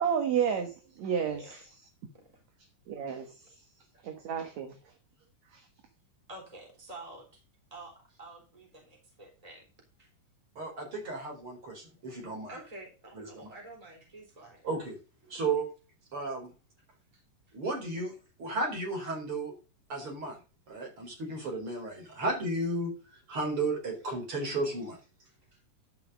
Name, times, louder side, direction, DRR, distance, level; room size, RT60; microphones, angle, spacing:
voice 1, 0.0-1.6 2.9-3.3 4.0-4.7 5.5-5.6, right 7 dB, 65° right, 5 dB, 2.4 m, -31 dB
voice 2, 6.3-7.4 7.7-9.7 10.0-10.1 12.5-14.7 17.1-17.2 25.5-25.6, right 2 dB, 10° right, 0 dB, 3.7 m, -48 dB
voice 3, 10.6-12.5 13.1-13.3 14.6-15.0 15.3-15.7 16.1-16.5 17.5-18.1 18.4-19.5 19.9-20.4 20.7-25.0, right 2 dB, 40° right, 1 dB, 4.9 m, -33 dB
12.0 x 5.7 x 5.4 m, 0.32 s
omnidirectional pair, 3.7 m